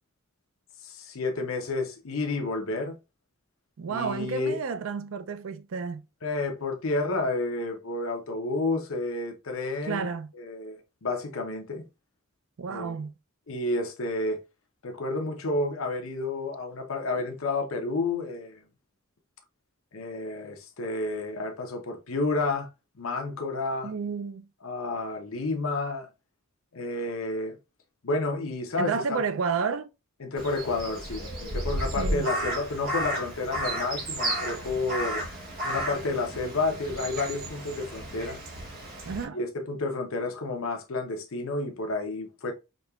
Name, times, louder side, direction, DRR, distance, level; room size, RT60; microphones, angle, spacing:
voice 1, 0.8-2.9 3.9-4.6 6.2-10.1 10.3-11.8 12.7-13.0 13.5-14.4 14.8-18.6 19.9-22.7 23.0-23.9 24.6-26.1 26.7-27.6 28.0-29.2 30.2-35.2 35.6-38.4 39.3-42.5, left 2 dB, 75° left, 0.8 m, -30 dB
voice 2, 3.8-6.1 9.9-10.3 12.6-13.2 23.8-24.5 28.8-29.9 32.0-32.3 39.1-39.4, right 5 dB, 70° right, 0.4 m, -31 dB
Crow, 30.4-39.2, right 1 dB, 45° right, 1.4 m, -33 dB
5.1 x 2.8 x 2.3 m
head